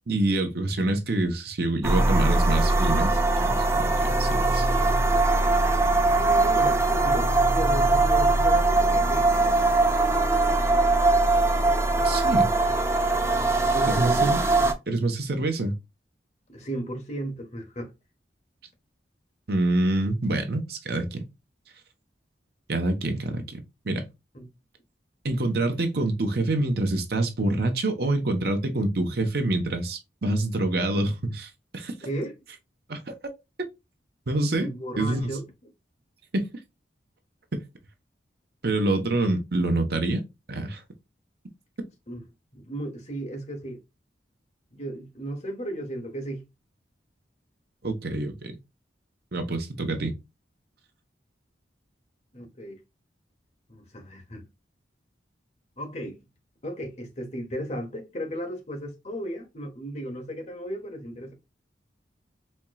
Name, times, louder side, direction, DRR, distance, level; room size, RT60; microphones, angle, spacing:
voice 1, 0.1-4.7 12.0-12.5 13.9-14.4 14.9-15.8 19.5-21.2 22.7-23.6 23.8-24.1 25.2-31.9 32.9-33.1 34.3-34.7 35.0-35.3 36.3-36.5 37.5-37.6 38.6-40.2 40.5-40.8 47.8-48.6 49.3-50.1, right 2 dB, 60° right, 0.9 m, -26 dB
sound 1, 1.8-14.7, right 2 dB, 15° right, 0.4 m, -21 dB
voice 2, 6.2-9.6 13.7-14.4 16.5-17.9 24.3-24.5 32.0-32.3 34.6-35.5 42.1-42.3 42.5-43.8 44.7-46.4 52.3-52.8 53.7-54.5 55.8-56.2 56.6-61.3, right 1 dB, 40° left, 1.1 m, -35 dB
4.3 x 2.9 x 2.3 m
head